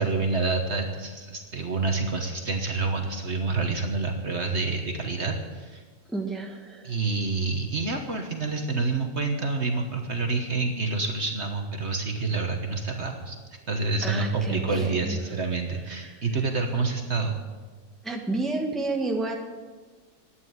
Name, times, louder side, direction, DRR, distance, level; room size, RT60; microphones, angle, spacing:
voice 1, 0.0-5.8 6.8-13.4 13.7-17.4, right 3 dB, 45° right, 4 dB, 1.4 m, -28 dB
voice 2, 6.1-7.0 14.0-15.2 15.9-16.2 18.0-19.4, right 2 dB, ahead, 1 dB, 1.3 m, -31 dB
11.5 x 9.3 x 9.4 m, 1.4 s
omnidirectional pair, 1.7 m